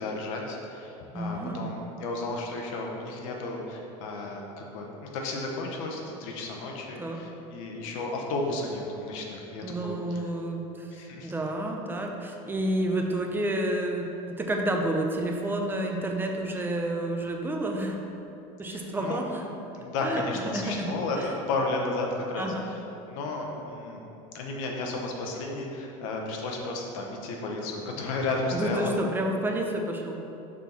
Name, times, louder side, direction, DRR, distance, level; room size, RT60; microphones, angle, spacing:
voice 1, 0.0-10.2 10.9-11.3 18.7-19.2 19.7-22.8 23.1-24.0 24.3-28.9, left 2 dB, 80° left, 0 dB, 1.1 m, -33 dB
voice 2, 1.1-1.7 7.0-7.2 9.6-18.0 18.6-19.5 20.0-21.3 22.4-22.7 28.5-30.2, right 1 dB, 10° right, 2 dB, 0.6 m, -30 dB
6.1 x 4.4 x 4.1 m, 2.9 s
supercardioid pair, 120°, 16 cm